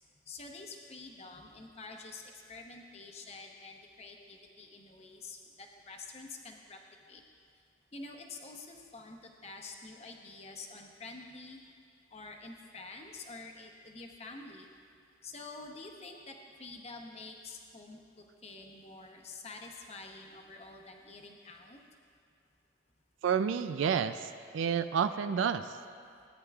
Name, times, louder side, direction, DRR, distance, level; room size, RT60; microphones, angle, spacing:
voice 1, 0.2-6.8 7.1-7.2 7.9-11.6 12.1-14.7 15.2-21.8, left 3 dB, 35° left, 2 dB, 0.8 m, -48 dB
voice 2, 23.2-25.8, right 7 dB, 85° right, 11 dB, 0.3 m, -30 dB
17.0 x 9.6 x 2.4 m, 2.3 s
head